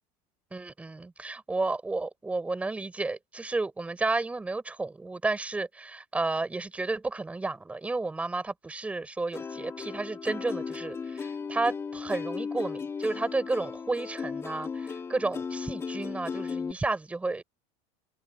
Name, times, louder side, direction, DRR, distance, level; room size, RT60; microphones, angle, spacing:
voice 1, 0.5-17.4, right 3 dB, 10° right, 5.8 m, -32 dB
Plucked string instrument, 9.3-16.7, left 5 dB, 15° left, 3.2 m, -36 dB
open air
cardioid pair, 170°, 16 cm